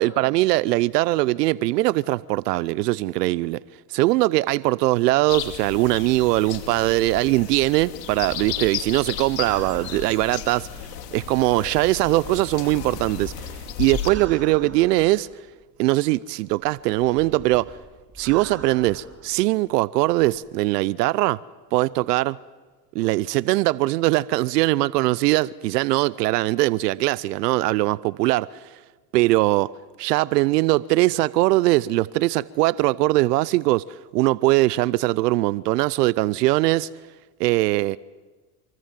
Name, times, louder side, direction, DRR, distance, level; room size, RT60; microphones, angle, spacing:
voice 1, 0.0-3.6 3.9-10.7 11.1-13.5 13.8-15.3 15.8-17.7 18.2-21.4 21.7-22.4 22.9-28.5 29.1-29.7 30.0-33.8 34.1-36.9 37.4-38.0, right 19 dB, 85° right, 0.7 m, -21 dB
sound 1, 5.3-14.1, left 9 dB, 85° left, 2.8 m, -34 dB
sound 2, 8.2-10.7 12.0-15.6 16.5-19.4 20.1-20.5, right 4 dB, 30° right, 4.4 m, -43 dB
27.0 x 24.5 x 7.5 m
hypercardioid pair, 85°, 47 cm